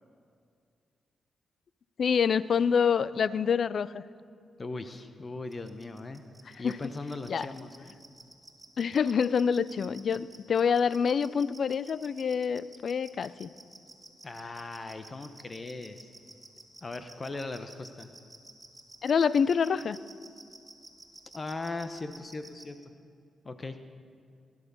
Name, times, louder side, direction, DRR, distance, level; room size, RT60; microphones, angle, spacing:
voice 1, 2.0-4.0 6.6-6.8 7.3-7.5 8.8-13.5 19.0-20.0, left 6 dB, 65° left, 17 dB, 0.5 m, -26 dB
voice 2, 4.6-6.2 6.6-8.0 14.2-16.1 16.8-18.1 21.3-22.9 23.4-23.9, left 3 dB, 35° left, 9 dB, 0.9 m, -39 dB
sound 1, 5.5-22.6, right 2 dB, 15° right, 2.9 m, -50 dB
19.0 x 11.0 x 6.9 m, 2.3 s
cardioid pair, 70°, 0 cm